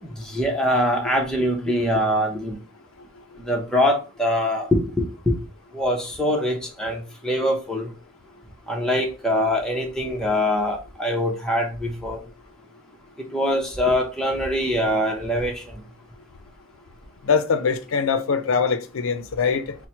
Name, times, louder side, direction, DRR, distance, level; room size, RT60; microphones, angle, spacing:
voice 1, 0.0-2.6 3.5-5.4 5.7-7.9 8.7-12.2 13.3-15.6, equal, 5° left, 0.7 m, -23 dB
voice 2, 17.2-19.8, left 5 dB, 75° left, 0.4 m, -22 dB
4.3 x 2.1 x 4.4 m
head